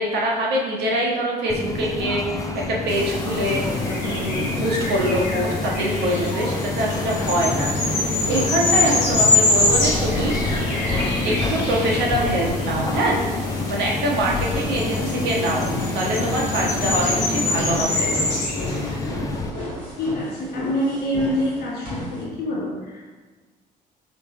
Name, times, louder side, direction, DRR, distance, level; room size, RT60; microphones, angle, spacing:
voice 1, 0.0-10.3 11.2-13.2 13.7-15.7 15.9-18.1, right 1 dB, 50° right, -2 dB, 0.8 m, -24 dB
sound 1, 1.5-19.5, left 3 dB, 15° left, 0.4 m, -28 dB
sound 2, 2.9-19.0, left 2 dB, 80° left, 1.0 m, -25 dB
sound 3, 7.4-22.2, left 1 dB, 85° right, 1.4 m, -32 dB
voice 2, 20.0-23.2, equal, 50° left, -6 dB, 1.1 m, -26 dB
5.0 x 3.4 x 3.0 m, 1.3 s
figure-of-eight pair, 50°, 21 cm